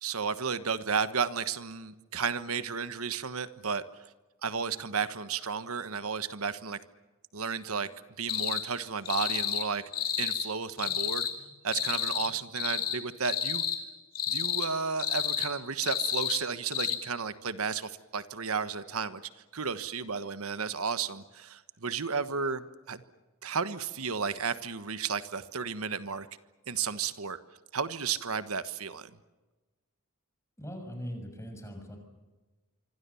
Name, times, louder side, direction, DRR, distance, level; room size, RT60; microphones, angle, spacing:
voice 1, 0.0-3.8 4.4-6.8 7.3-7.9 8.2-9.8 10.2-11.3 11.6-13.6 14.3-19.2 19.5-23.0 23.4-26.3 26.7-27.4 27.7-29.1, right 5 dB, 80° right, 12 dB, 1.3 m, -33 dB
sound 1, 8.3-8.6 9.1-9.7 9.9-10.5 10.8-11.3 11.7-12.3 12.6-13.0 13.2-13.8 14.2-14.7 15.0-15.5 15.8-16.4 16.7-17.0, left 8 dB, 40° left, 3.3 m, -30 dB
voice 2, 30.6-32.0, equal, 15° left, 4 dB, 6.5 m, -40 dB
26.0 x 25.5 x 7.1 m, 1.2 s
head